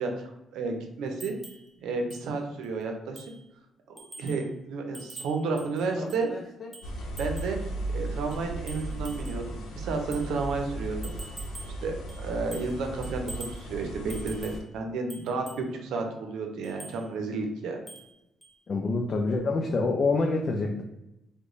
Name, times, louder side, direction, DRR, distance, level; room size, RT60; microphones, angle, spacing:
voice 1, 0.0-1.4 1.8-3.2 3.9-6.3 7.0-7.6 7.9-11.1 11.6-17.8, right 3 dB, 80° right, 4 dB, 0.6 m, -32 dB
sound 1, 1.2-1.7 2.1-2.3 2.6-2.7 3.2-3.4 4.0-4.5 4.9-6.3 6.7-7.6 8.3-9.5 10.1-10.3 11.0-11.8 12.1-12.8 13.0-13.6 14.1-14.7 15.1-15.7 16.6-17.0 17.9-18.1 18.4-18.5, right 3 dB, 25° right, 0.7 m, -46 dB
voice 2, 6.0-6.7 18.7-20.8, left 3 dB, 45° left, 2 dB, 0.4 m, -27 dB
sound 2, 6.8-14.6, right 1 dB, 80° left, 0.8 m, -36 dB
3.0 x 2.2 x 3.8 m, 0.89 s
cardioid pair, 90°, 0 cm